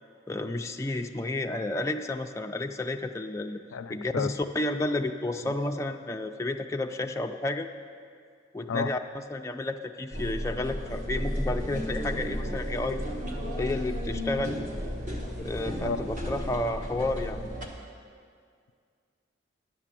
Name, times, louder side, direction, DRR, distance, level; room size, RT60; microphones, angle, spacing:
voice 1, 0.3-3.6 3.9-7.7 8.5-13.0 13.6-14.6 15.4-17.4, left 2 dB, 15° left, 4 dB, 0.3 m, -31 dB
voice 2, 3.7-4.3 5.4-5.5 8.7-8.9 15.8-16.0, left 5 dB, 85° left, 12 dB, 0.4 m, -32 dB
sound 1, 10.1-17.7, equal, 40° right, 1.2 m, -33 dB
10.5 x 6.8 x 7.4 m, 2.2 s
head